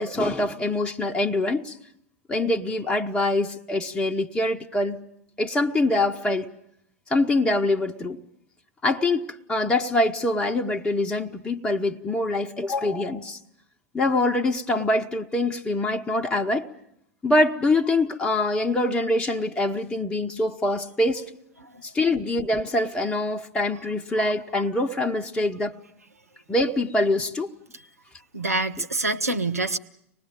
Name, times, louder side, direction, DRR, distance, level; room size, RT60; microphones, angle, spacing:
voice 1, 0.0-1.8 2.3-5.0 5.4-6.5 7.1-8.2 8.8-13.4 13.9-16.7 17.2-21.3 21.8-25.8 26.5-27.5, left 2 dB, 10° left, 1.0 m, -24 dB
voice 2, 28.3-29.8, right 2 dB, 80° right, 1.0 m, -26 dB
25.0 x 19.5 x 7.8 m
figure-of-eight pair, 90°, 8 cm